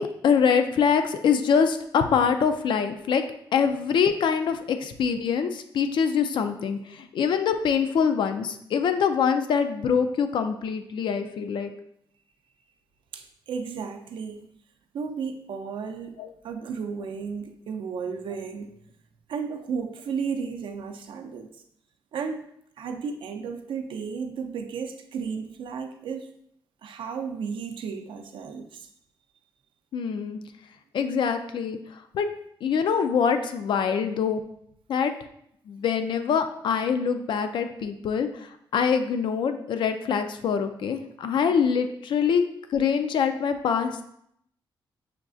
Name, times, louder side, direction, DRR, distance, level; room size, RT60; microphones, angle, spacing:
voice 1, 0.0-3.2 3.5-11.7 16.2-16.3 29.9-30.4 30.9-31.8 32.1-32.3 32.6-34.4 34.9-35.1 35.7-38.3 38.7-42.4 42.7-44.0, left 6 dB, 65° left, 8 dB, 0.4 m, -24 dB
voice 2, 13.1-14.5 14.9-18.8 19.3-21.5 22.1-22.4 22.8-26.3 26.8-28.9, right 6 dB, 75° right, 6 dB, 0.4 m, -34 dB
5.8 x 2.3 x 2.5 m, 0.72 s
wide cardioid pair, 130°, 9 cm